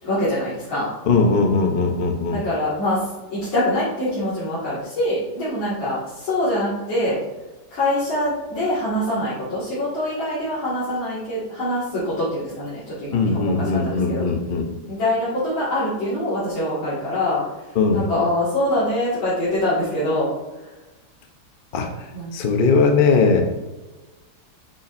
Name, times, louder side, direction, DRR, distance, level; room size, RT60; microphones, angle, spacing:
voice 1, 0.0-0.9 2.3-3.0 3.3-7.2 7.7-14.2 14.9-17.4 17.9-20.3 22.1-22.3, left 1 dB, 80° left, -12 dB, 2.8 m, -24 dB
voice 2, 1.1-2.4 13.1-14.7 17.7-18.0 21.7-21.9 22.3-23.4, left 4 dB, 60° left, 4 dB, 0.5 m, -19 dB
7.0 x 6.3 x 2.6 m, 1.1 s
omnidirectional pair, 2.1 m